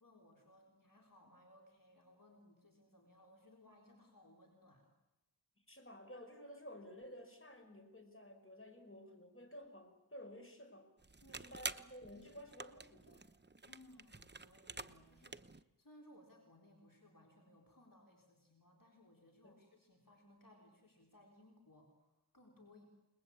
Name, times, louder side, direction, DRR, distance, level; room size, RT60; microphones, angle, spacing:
voice 1, 0.0-4.9 11.2-11.6 13.6-15.4 15.8-22.9, left 1 dB, 50° left, 1 dB, 4.1 m, -64 dB
voice 2, 5.7-10.9 11.3-13.2 19.4-19.6, equal, 30° left, 5 dB, 5.4 m, -54 dB
sound 1, 11.0-15.6, right 3 dB, 25° right, 0.9 m, -49 dB
29.5 x 20.5 x 8.7 m, 0.99 s
wide cardioid pair, 50°, 41 cm